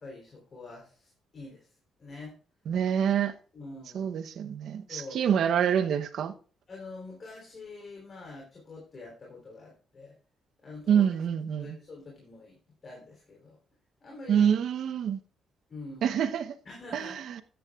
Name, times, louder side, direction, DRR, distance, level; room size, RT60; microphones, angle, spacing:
voice 1, 0.0-1.7 2.0-2.4 3.5-4.2 4.9-5.2 6.7-10.2 10.6-11.1 11.6-13.6 14.0-14.5 15.7-16.1 16.6-17.2, left 3 dB, 40° left, 3.7 m, -45 dB
voice 2, 2.7-3.3 3.9-6.3 10.9-11.8 14.3-15.2 16.0-16.6 16.9-17.4, right 8 dB, 70° right, 0.9 m, -26 dB
13.5 x 10.5 x 2.4 m
cardioid pair, 90°, 0 cm